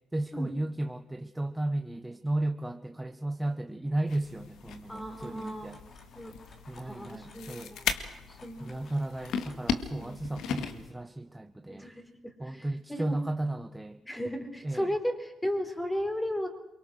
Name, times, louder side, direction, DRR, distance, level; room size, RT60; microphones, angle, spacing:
voice 1, 0.1-5.8 6.7-7.8 8.6-11.9 12.4-14.0 14.6-14.9, right 1 dB, 10° right, 9 dB, 1.0 m, -34 dB
sound 1, 4.1-10.9, left 7 dB, 80° left, 2.0 m, -37 dB
sound 2, 4.3-10.1, left 3 dB, 45° left, 4.5 m, -58 dB
voice 2, 4.9-5.7 6.1-6.3 6.8-7.9 8.3-8.7 10.0-10.2 11.7-13.1 14.0-16.5, equal, 10° left, 6 dB, 4.4 m, -35 dB
28.5 x 23.5 x 6.4 m, 0.85 s
cardioid pair, 90°, 0 cm